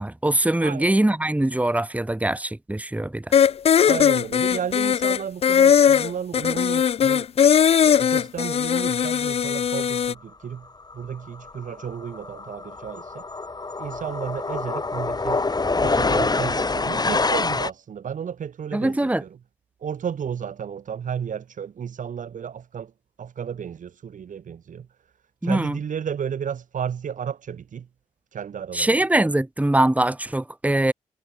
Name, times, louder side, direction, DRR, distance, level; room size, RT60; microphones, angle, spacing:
voice 1, 0.0-3.2 18.7-19.2 25.4-25.8 28.7-30.9, right 1 dB, 10° right, 1.4 m, -22 dB
voice 2, 0.6-1.0 3.9-7.3 7.8-10.7 10.9-13.3 13.8-15.4 15.8-19.4 19.8-22.9 23.2-24.9 25.4-27.9 28.3-29.0, right 8 dB, 60° right, 4.4 m, -33 dB
sound 1, 3.3-10.1, left 8 dB, 45° left, 0.4 m, -19 dB
sound 2, 10.9-11.1 11.4-17.7, left 3 dB, 25° left, 1.5 m, -26 dB
hypercardioid pair, 45°, 15 cm